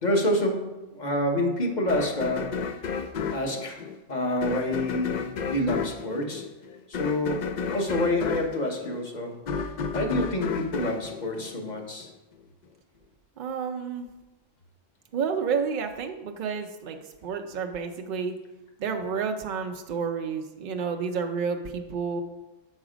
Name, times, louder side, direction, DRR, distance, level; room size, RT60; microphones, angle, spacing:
voice 1, 0.0-2.5 3.3-3.8 4.1-6.4 6.9-9.4 9.9-12.1, left 1 dB, 40° left, 2 dB, 1.0 m, -28 dB
sound 1, 1.9-12.1, left 5 dB, 80° left, 0.4 m, -32 dB
voice 2, 13.4-14.1 15.1-18.3 18.8-22.2, right 6 dB, 65° right, 4 dB, 0.5 m, -30 dB
6.3 x 4.8 x 5.0 m, 1.1 s
omnidirectional pair, 1.3 m